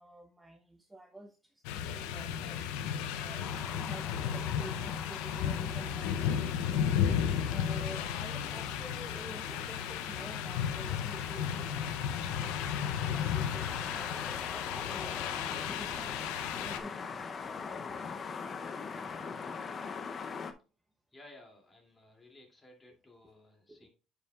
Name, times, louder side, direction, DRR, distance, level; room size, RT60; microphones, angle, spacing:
voice 1, 0.0-17.2 23.7-23.9, right 1 dB, 10° right, 3 dB, 0.8 m, -50 dB
sound 1, 1.6-16.8, left 9 dB, 85° left, 0.6 m, -34 dB
sound 2, 3.4-20.5, left 5 dB, 35° left, 0.7 m, -43 dB
voice 2, 21.1-23.9, left 1 dB, 20° left, 1 dB, 2.6 m, -57 dB
9.3 x 5.6 x 2.4 m, 0.35 s
cardioid pair, 105°, 0 cm